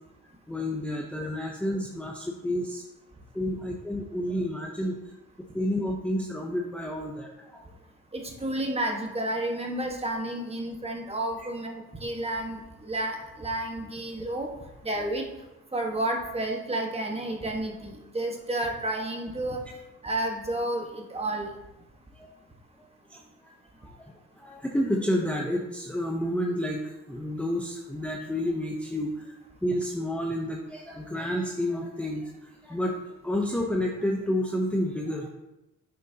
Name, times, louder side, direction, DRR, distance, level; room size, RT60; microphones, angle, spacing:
voice 1, 0.5-2.8 3.3-5.1 5.5-7.7 11.4-11.5 22.1-22.3 23.1-23.5 23.8-24.1 24.4-33.0 33.2-35.3, left 1 dB, 5° left, 0 dB, 0.7 m, -30 dB
voice 2, 8.1-14.5 14.8-15.3 15.7-19.6 20.0-21.5, right 1 dB, 20° right, 1 dB, 1.4 m, -31 dB
9.0 x 6.4 x 2.8 m, 0.96 s
cardioid pair, 90°, 30 cm